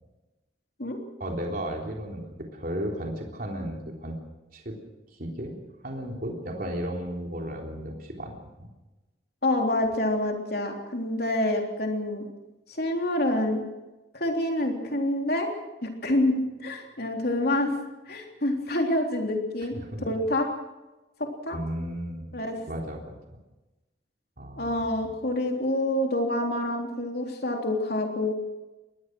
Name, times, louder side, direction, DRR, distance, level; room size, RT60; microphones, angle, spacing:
voice 1, 1.2-4.2 4.5-4.8 5.2-5.6 5.8-8.7 19.7-20.1 21.5-22.4 22.7-23.1 24.4-24.9, equal, 45° right, 1 dB, 3.6 m, -34 dB
voice 2, 9.4-12.2 12.8-13.6 14.1-15.5 15.8-17.8 18.1-19.7 20.0-20.5 21.2-21.6 22.3-22.6 24.6-28.4, left 1 dB, 50° left, 2 dB, 3.6 m, -27 dB
22.5 x 19.5 x 6.3 m, 1.1 s
head